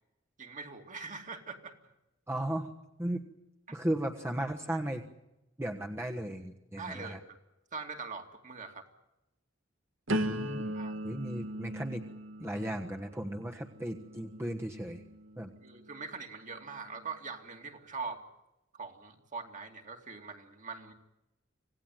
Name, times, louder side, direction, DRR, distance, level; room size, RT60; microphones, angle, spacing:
voice 1, 0.4-1.8 3.7-3.8 6.8-7.4 7.7-8.9 10.7-11.0 15.6-18.2 18.8-20.9, right 4 dB, 40° right, 4 dB, 2.6 m, -42 dB
voice 2, 2.3-2.7 3.0-3.2 3.7-5.1 5.6-7.2 10.1-10.8 11.0-12.0 12.4-15.0 15.4-15.5, right 1 dB, 15° right, 2 dB, 1.3 m, -36 dB
sound 1, 10.1-15.9 16.5-16.9, equal, 85° right, 1.7 m, -39 dB
26.5 x 17.5 x 9.3 m, 0.93 s
head